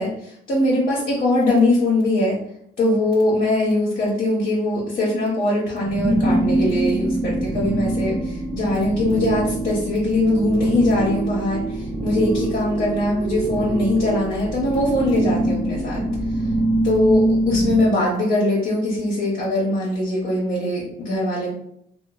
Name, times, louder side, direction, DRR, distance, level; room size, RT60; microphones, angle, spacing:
voice 1, 0.0-2.4 2.8-16.0 16.3-16.5 16.8-21.5, left 1 dB, 50° left, -5 dB, 0.9 m, -21 dB
sound 1, 5.8-17.8, right 1 dB, 15° right, 0.5 m, -24 dB
2.8 x 2.1 x 2.3 m, 0.71 s
cardioid pair, 90°, 20 cm